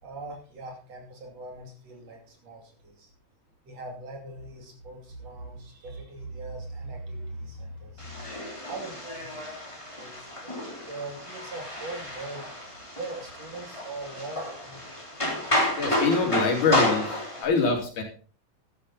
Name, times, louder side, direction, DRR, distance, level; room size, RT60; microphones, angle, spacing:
voice 1, 0.0-3.1 3.7-8.3 8.7-9.3 10.0-10.5 10.9-12.7 12.9-15.1, right 2 dB, 60° right, 2 dB, 3.9 m, -40 dB
sound 1, 8.0-17.4, left 1 dB, 10° left, 3.4 m, -31 dB
voice 2, 15.8-18.0, left 4 dB, 90° left, 2 dB, 4.4 m, -25 dB
13.0 x 11.0 x 4.0 m, 0.40 s
omnidirectional pair, 3.4 m